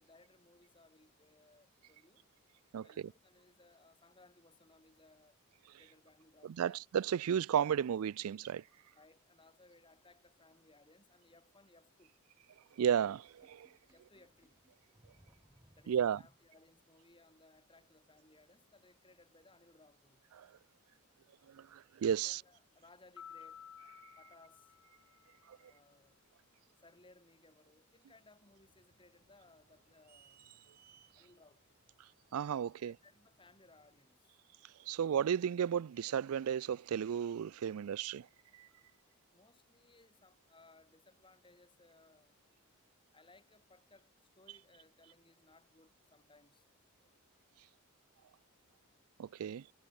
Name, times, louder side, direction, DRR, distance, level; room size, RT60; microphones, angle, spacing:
voice 1, 0.0-2.2 2.8-5.4 5.8-6.8 8.9-12.1 13.9-14.6 15.7-20.3 22.2-23.6 24.2-24.8 25.6-26.1 26.8-30.5 31.1-31.8 32.8-34.4 39.3-42.4 43.1-46.7, left 2 dB, 20° left, 5.8 m, -64 dB
voice 2, 6.6-8.6 12.8-13.7 15.9-16.2 20.4-20.5 21.5-22.4 25.5-25.6 32.3-32.9 34.9-38.3 38.6-38.7 49.2-49.6, right 8 dB, 75° right, 0.4 m, -33 dB
Sink (filling or washing), 13.0-16.8, equal, 15° right, 2.3 m, -68 dB
sound 1, 23.2-25.7, left 8 dB, 80° left, 0.8 m, -54 dB
sound 2, 28.5-34.0, right 7 dB, 45° right, 5.1 m, -69 dB
head